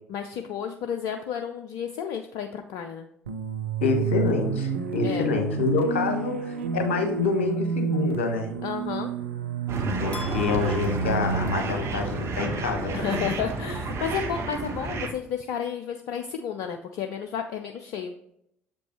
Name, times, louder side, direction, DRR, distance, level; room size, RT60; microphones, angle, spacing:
voice 1, 0.1-3.1 5.0-5.3 8.6-9.1 12.9-18.1, left 8 dB, 60° left, 6 dB, 0.5 m, -32 dB
sound 1, 3.3-13.1, right 5 dB, 85° right, 0.4 m, -30 dB
voice 2, 3.8-8.5 10.0-13.3, left 4 dB, 80° left, 4 dB, 1.0 m, -27 dB
sound 2, 9.7-15.1, right 3 dB, 45° right, 1.2 m, -31 dB
sound 3, 10.1-12.3, left 3 dB, 20° left, 1.3 m, -43 dB
7.4 x 5.2 x 2.9 m, 0.75 s
figure-of-eight pair, 55°, 6 cm